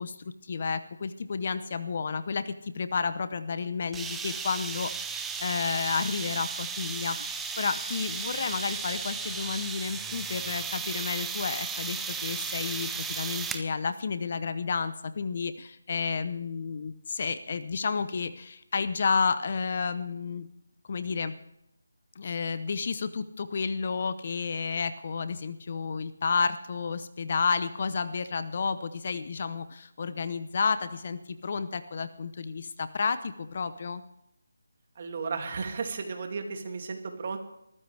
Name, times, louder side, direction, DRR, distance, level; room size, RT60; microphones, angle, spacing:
voice 1, 0.0-20.5 20.9-21.4 22.2-34.0, left 5 dB, 40° left, 13 dB, 0.8 m, -31 dB
sound 1, 3.9-13.7, right 5 dB, 5° right, 0.6 m, -35 dB
voice 2, 35.0-37.4, right 4 dB, 40° right, 4 dB, 2.6 m, -34 dB
20.5 x 14.5 x 3.4 m, 0.82 s
figure-of-eight pair, 170°, 0 cm